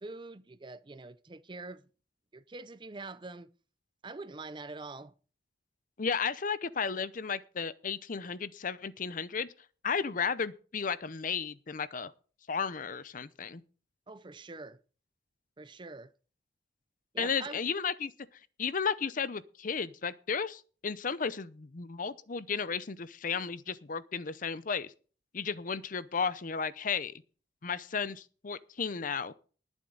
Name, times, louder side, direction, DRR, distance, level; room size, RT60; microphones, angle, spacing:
voice 1, 0.0-1.8 2.3-3.5 4.0-5.1 14.1-14.8 15.6-16.1 17.1-17.6, right 3 dB, 25° right, 0.6 m, -44 dB
voice 2, 6.0-9.5 9.8-12.1 12.5-13.6 17.2-18.1 18.6-24.9 25.3-27.1 27.6-29.3, left 6 dB, 45° left, 0.6 m, -34 dB
20.5 x 7.3 x 3.9 m
head